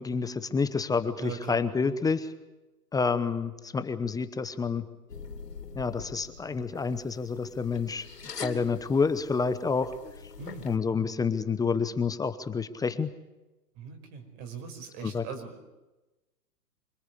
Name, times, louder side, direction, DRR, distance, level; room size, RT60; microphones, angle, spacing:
voice 1, 0.0-2.3 2.9-4.8 5.7-8.1 8.4-9.9 10.6-13.1 15.0-15.2, left 5 dB, 10° left, 12 dB, 0.8 m, -28 dB
voice 2, 1.2-2.0 10.4-10.6 13.8-15.6, right 6 dB, 40° right, 6 dB, 5.4 m, -41 dB
Drinking Bottle, 5.1-10.8, left 6 dB, 85° left, 3.2 m, -44 dB
26.0 x 19.5 x 8.4 m, 1.1 s
hypercardioid pair, 125°, 47 cm